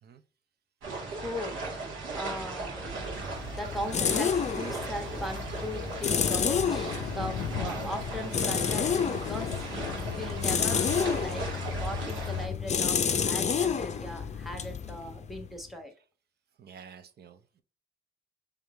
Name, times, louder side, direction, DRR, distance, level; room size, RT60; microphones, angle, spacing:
sound 1, 0.8-12.4, right 3 dB, 80° right, 1.8 m, -37 dB
voice 1, 1.2-2.8 3.5-15.9, left 1 dB, ahead, 1.1 m, -39 dB
sound 2, 3.0-15.6, left 7 dB, 35° left, 0.5 m, -30 dB
Thunder, 4.8-13.9, left 9 dB, 85° left, 0.5 m, -41 dB
voice 2, 16.6-17.6, right 7 dB, 55° right, 0.6 m, -51 dB
3.6 x 3.5 x 4.2 m
cardioid pair, 90°, 20 cm